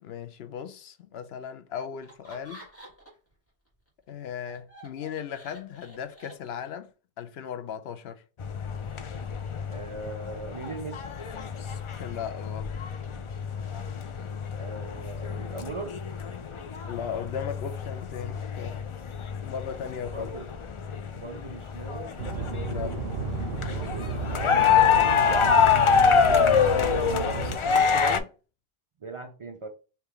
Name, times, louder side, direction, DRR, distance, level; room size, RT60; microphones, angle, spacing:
voice 1, 0.0-2.6 4.1-6.9 7.2-8.2 11.8-12.7 16.9-18.9 19.4-20.3 22.6-23.0 26.1-28.3, left 8 dB, 85° left, 0.9 m, -37 dB
Laughter, 2.0-3.3 3.7-6.9, right 1 dB, 15° left, 1.6 m, -49 dB
sound 1, 8.4-28.2, left 7 dB, 55° left, 0.3 m, -26 dB
voice 2, 9.7-11.1 13.1-13.3 14.6-16.0 20.1-20.5 21.1-22.2 23.1-23.3 23.6-25.2 29.0-29.7, right 3 dB, 45° right, 0.4 m, -41 dB
sound 2, 22.2-27.6, right 5 dB, 75° right, 1.0 m, -33 dB
3.6 x 2.8 x 4.6 m
omnidirectional pair, 1.0 m